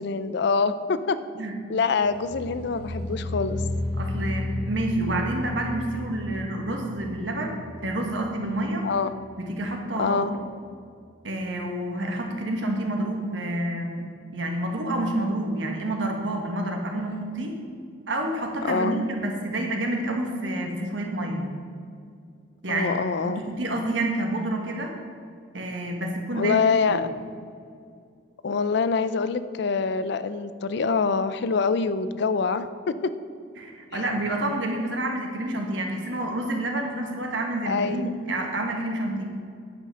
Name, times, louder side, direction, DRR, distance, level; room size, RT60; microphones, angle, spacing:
voice 1, 0.0-1.2 1.7-3.6 8.8-9.1 10.0-10.3 18.6-19.0 22.7-23.4 26.3-27.1 28.4-33.1 33.9-34.0 37.6-38.1, left 5 dB, 65° left, 13 dB, 0.5 m, -25 dB
sound 1, 2.0-9.2 9.4-9.9 10.2-10.3, left 1 dB, 45° right, 2.2 m, -33 dB
voice 2, 4.0-8.9 9.4-10.2 11.2-14.0 14.3-17.6 18.1-21.4 22.6-22.9 23.2-24.9 25.5-27.0 33.6-39.2, right 1 dB, 80° right, 2 dB, 1.5 m, -28 dB
9.6 x 5.7 x 6.4 m, 2.3 s
head